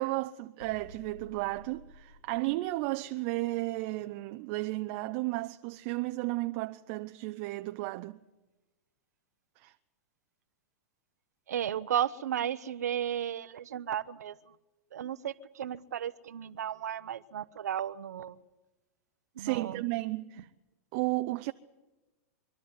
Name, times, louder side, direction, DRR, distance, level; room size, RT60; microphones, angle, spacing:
voice 1, 0.0-8.2 9.6-9.7 19.4-20.5 20.9-21.5, right 20 dB, 45° right, 0.6 m, -33 dB
sound 1, 0.6-3.3, left 1 dB, 80° left, 1.7 m, -54 dB
voice 2, 11.5-14.4 14.9-18.4 19.4-19.9, right 10 dB, 80° right, 0.8 m, -34 dB
24.5 x 12.5 x 9.6 m
hypercardioid pair, 115°, 9 cm